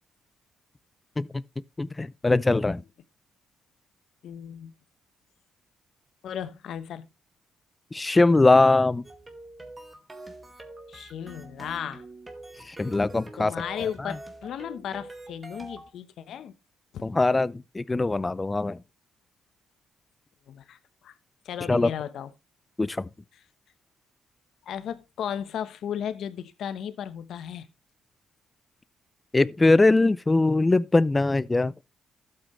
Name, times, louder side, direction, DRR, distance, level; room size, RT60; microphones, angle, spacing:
voice 1, 1.8-2.8 7.9-9.0 12.7-13.5 17.0-18.8 21.7-21.9 22.8-23.1 29.3-31.7, left 2 dB, 20° left, 0.5 m, -21 dB
voice 2, 4.2-4.7 6.2-7.1 10.9-12.0 13.4-16.5 16.9-17.1 20.5-21.1 21.4-22.3 23.3-23.4 24.6-27.7, left 9 dB, 70° left, 1.0 m, -35 dB
sound 1, 9.0-15.9, right 2 dB, 20° right, 2.0 m, -45 dB
12.5 x 8.1 x 3.2 m
cardioid pair, 90°, 0 cm